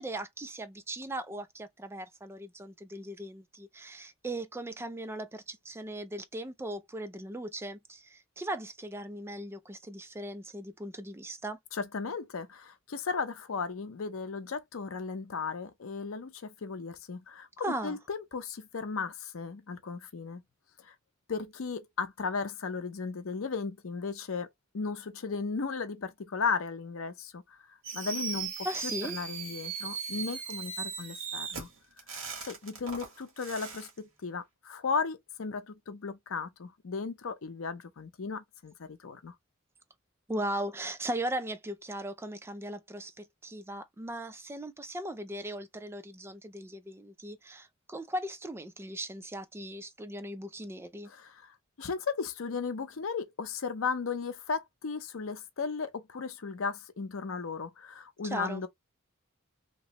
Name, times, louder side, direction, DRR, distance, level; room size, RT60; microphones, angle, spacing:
voice 1, 0.0-11.6 17.6-18.0 28.6-29.2 40.3-51.1 58.2-58.6, right 1 dB, 10° right, 0.4 m, -38 dB
voice 2, 11.7-20.4 20.8-20.9 21.3-24.5 24.7-31.7 32.4-39.4 51.1-58.7, left 5 dB, 70° left, 0.6 m, -36 dB
Fireworks, 27.8-33.9, right 5 dB, 70° right, 1.4 m, -38 dB
3.0 x 2.6 x 2.9 m
head